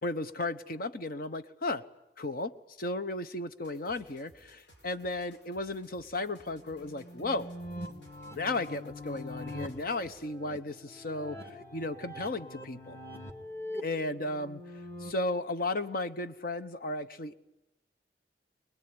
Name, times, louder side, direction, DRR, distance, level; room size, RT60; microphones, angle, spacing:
voice 1, 0.0-1.8 2.2-7.5 8.3-13.0 13.8-14.6 15.0-17.3, left 2 dB, 55° left, 11 dB, 1.1 m, -34 dB
sound 1, 3.6-10.4, equal, 85° left, 5.0 m, -60 dB
sound 2, 6.4-15.1, left 1 dB, 15° left, 2.2 m, -44 dB
25.0 x 20.5 x 9.7 m, 0.90 s
head